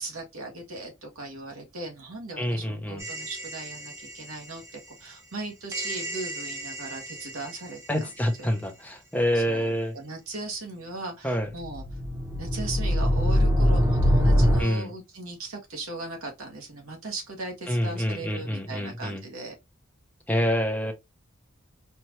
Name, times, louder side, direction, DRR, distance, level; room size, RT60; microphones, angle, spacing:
voice 1, 0.0-8.1 8.4-8.5 9.3-11.8 12.4-19.5, right 2 dB, 85° right, 1.5 m, -38 dB
voice 2, 2.4-3.0 7.9-10.0 11.2-11.5 14.6-14.9 17.7-19.2 20.3-20.9, equal, 5° left, 0.7 m, -27 dB
sound 1, 3.0-4.1 5.7-7.5 11.4-14.6, equal, 15° right, 1.0 m, -24 dB
4.3 x 2.5 x 3.0 m
head